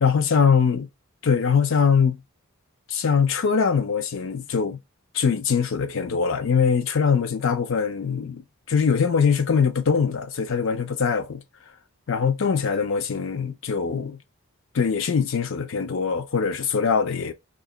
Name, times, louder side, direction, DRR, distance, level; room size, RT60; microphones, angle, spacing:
voice 1, 0.0-0.9 1.2-2.2 2.9-4.8 5.1-8.4 8.7-11.4 12.1-14.2 14.7-17.3, left 6 dB, 55° left, 0.5 m, -22 dB
2.8 x 2.5 x 3.7 m
head